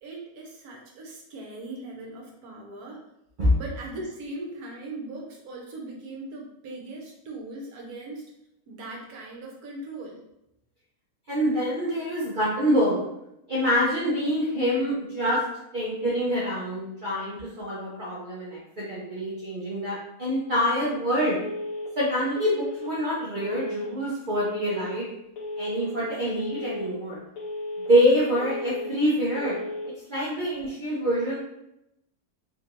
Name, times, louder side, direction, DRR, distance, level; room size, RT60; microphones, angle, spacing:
voice 1, 0.0-3.0 3.6-8.3 8.7-10.2, right 2 dB, 75° right, -1 dB, 1.3 m, -39 dB
voice 2, 11.3-13.0 13.5-15.4 15.7-21.4 22.0-25.1 25.6-27.2 27.8-29.6 30.1-31.4, equal, 45° right, -7 dB, 0.7 m, -25 dB
Telephone, 21.4-21.9 22.4-22.9 23.4-23.9 24.4-24.9 25.4-25.9 26.4-26.9 27.4-27.9 28.4-28.9 29.4-29.9, left 2 dB, 65° left, 1.1 m, -34 dB
3.5 x 3.1 x 2.5 m, 0.83 s
omnidirectional pair, 1.6 m